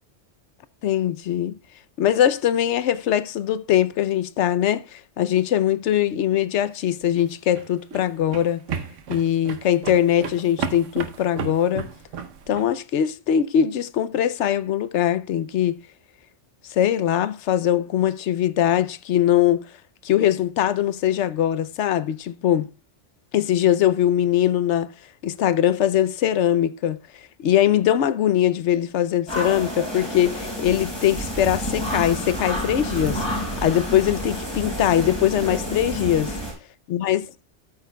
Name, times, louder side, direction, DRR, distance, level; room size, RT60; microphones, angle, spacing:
voice 1, 0.8-1.6 2.0-8.6 9.1-11.9 12.5-15.8 16.7-19.6 20.0-22.7 23.3-24.9 25.2-27.0 27.4-33.2 33.6-36.3 36.9-37.2, left 11 dB, 70° left, 0.9 m, -21 dB
sound 1, 7.0-12.7, right 6 dB, 80° right, 1.2 m, -33 dB
sound 2, 29.3-36.5, equal, 20° left, 5.0 m, -29 dB
13.5 x 8.2 x 2.2 m
omnidirectional pair, 1.3 m